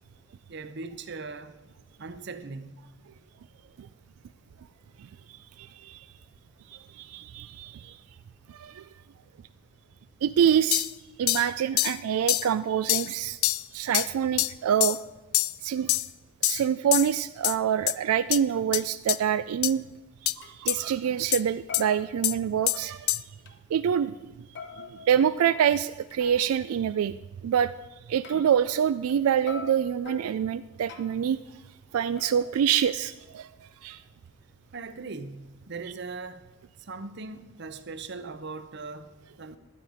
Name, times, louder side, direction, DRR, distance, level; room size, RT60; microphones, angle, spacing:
voice 1, 0.5-1.6 2.0-2.7 34.7-36.5 36.8-39.6, right 4 dB, 55° right, 0.7 m, -39 dB
voice 2, 5.6-6.1 6.7-8.0 8.5-8.8 10.2-10.9 11.2-13.4 13.7-15.0 15.6-16.0 16.4-19.9 20.2-23.1 23.7-24.3 24.8-27.1 27.4-27.7 28.1-31.4 31.9-33.5 33.8-34.0, right 8 dB, 90° right, 0.3 m, -26 dB
sound 1, 10.7-10.9 11.3-11.5 11.8-12.0 12.3-12.5 12.9-13.1 13.4-13.6 13.9-14.1 14.4-14.5 14.8-15.0 15.3-15.5 15.9-16.1 16.4-16.6 16.9-17.1 17.4-17.6 17.9-18.0 18.3-18.4 18.7-18.8 19.1-19.2 19.6-19.7 20.3-20.4 20.7-20.8 21.3-21.4 21.7-21.8 22.2-22.4 22.7-22.8 23.1-23.2, left 18 dB, 80° left, 0.3 m, -25 dB
sound 2, 19.8-19.9 20.4-20.6 21.0-21.4 21.7-23.0 23.5-23.6 24.6-26.6 28.2-29.2 29.5-31.4 32.2-33.3, left 4 dB, 55° left, 0.9 m, -44 dB
12.0 x 9.2 x 5.0 m
head